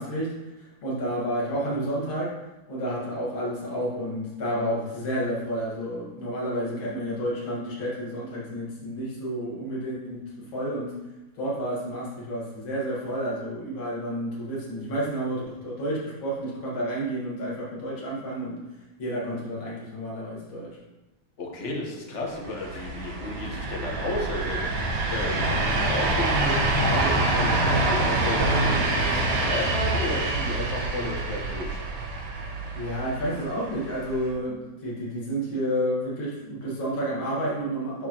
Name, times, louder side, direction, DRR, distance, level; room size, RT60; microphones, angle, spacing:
voice 1, 0.0-2.3 2.7-10.9 11.3-18.6 19.0-20.8 25.5-25.6 32.7-38.1, right 1 dB, 85° left, -6 dB, 2.6 m, -30 dB
voice 2, 21.4-31.8, left 2 dB, 40° left, -1 dB, 1.4 m, -33 dB
sound 1, 22.4-34.3, right 2 dB, 80° right, 1.8 m, -26 dB
10.0 x 4.7 x 3.0 m, 1.0 s
omnidirectional pair, 2.1 m